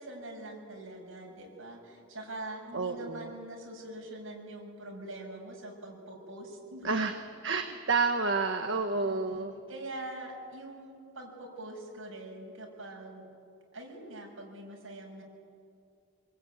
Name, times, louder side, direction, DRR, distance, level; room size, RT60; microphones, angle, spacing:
voice 1, 0.0-7.0 9.0-13.3 13.7-15.2, right 1 dB, 75° right, 0 dB, 6.5 m, -44 dB
voice 2, 2.7-3.3 6.8-9.5, right 4 dB, 60° right, 5 dB, 1.2 m, -30 dB
25.0 x 22.5 x 9.3 m, 2.4 s
head